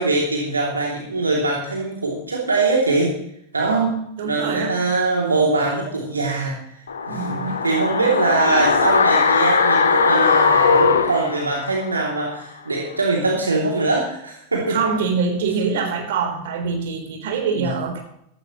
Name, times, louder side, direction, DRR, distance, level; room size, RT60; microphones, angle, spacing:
voice 1, 0.0-3.1 3.5-3.8 4.2-6.6 7.1-14.9 17.5-17.7, right 3 dB, 75° right, -2 dB, 2.8 m, -22 dB
voice 2, 3.7-4.7 7.1-7.5 7.9-8.0 14.7-18.0, right 5 dB, 55° right, 2 dB, 3.8 m, -24 dB
sound 1, 6.9-12.0 12.3-12.4, left 5 dB, 70° left, 1.3 m, -19 dB
15.0 x 15.0 x 3.1 m, 0.72 s
figure-of-eight pair, 90°, 0 cm